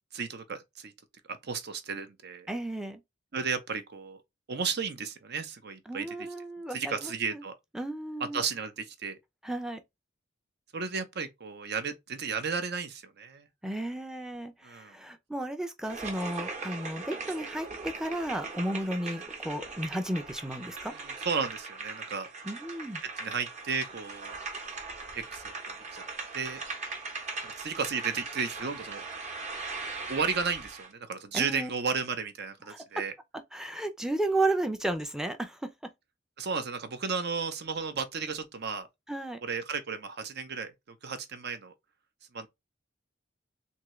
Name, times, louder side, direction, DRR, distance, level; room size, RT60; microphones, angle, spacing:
voice 1, 0.1-0.9 1.3-2.5 3.3-4.2 4.5-6.1 6.7-7.5 8.3-9.2 10.7-13.5 14.6-14.9 20.9-22.3 23.2-24.4 25.1-25.5 25.9-26.0 26.3-26.6 27.4-29.0 30.1-33.1 36.4-38.9 39.4-41.7 42.3-42.5, right 5 dB, 55° right, 0.7 m, -34 dB
voice 2, 2.5-3.0 5.9-7.4 7.7-8.4 9.4-9.8 13.6-20.9 22.4-23.0 31.3-31.7 32.7-32.8 33.5-35.7 39.1-39.4, right 1 dB, 5° right, 0.5 m, -33 dB
sound 1, 15.8-30.9, right 4 dB, 35° right, 1.0 m, -40 dB
3.6 x 2.8 x 3.1 m
head